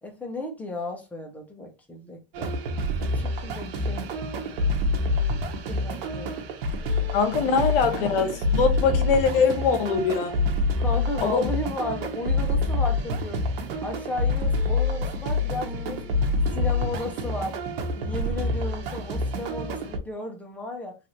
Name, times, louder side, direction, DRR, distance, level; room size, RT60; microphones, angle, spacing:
voice 1, 0.0-2.5 3.0-4.0 5.7-6.3 7.5-8.1 10.8-13.4 13.8-16.1 16.5-17.6 18.0-21.0, left 2 dB, 5° left, 0.6 m, -34 dB
sound 1, 2.3-20.0, left 2 dB, 85° right, 0.9 m, -27 dB
voice 2, 7.1-10.4 11.2-11.5, left 5 dB, 75° left, 0.9 m, -22 dB
3.2 x 2.5 x 2.9 m
supercardioid pair, 155°, 29 cm